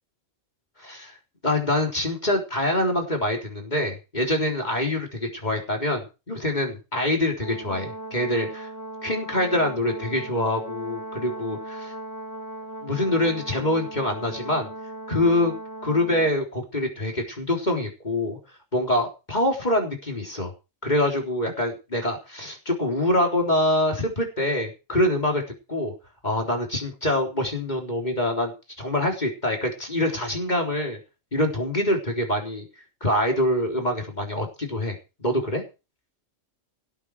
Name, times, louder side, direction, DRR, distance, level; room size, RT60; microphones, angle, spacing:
voice 1, 0.8-1.1 1.4-8.7 9.0-11.9 12.8-14.7 15.1-15.6 15.8-18.4 18.7-20.5 20.8-25.4 25.7-25.9 26.2-28.5 28.8-31.0 31.3-32.7 33.0-35.6, left 1 dB, 35° left, 1 dB, 4.0 m, -25 dB
Brass instrument, 7.4-16.3, right 2 dB, 75° left, 2.8 m, -38 dB
18.5 x 8.9 x 4.8 m, 0.30 s
omnidirectional pair, 1.3 m